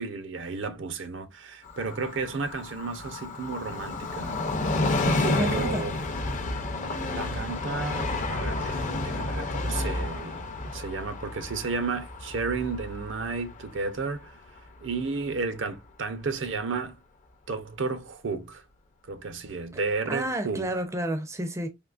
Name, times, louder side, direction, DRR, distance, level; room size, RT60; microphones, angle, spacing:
voice 1, 0.0-4.4 5.4-5.9 7.1-14.4 14.8-17.0 17.5-18.6 19.0-20.7, right 4 dB, 65° right, 0.5 m, -33 dB
Train, 1.6-15.0 15.3-15.4, left 2 dB, 40° left, 0.5 m, -31 dB
voice 2, 5.1-5.9 20.1-21.7, right 1 dB, 15° right, 0.4 m, -30 dB
3.7 x 2.8 x 2.3 m
head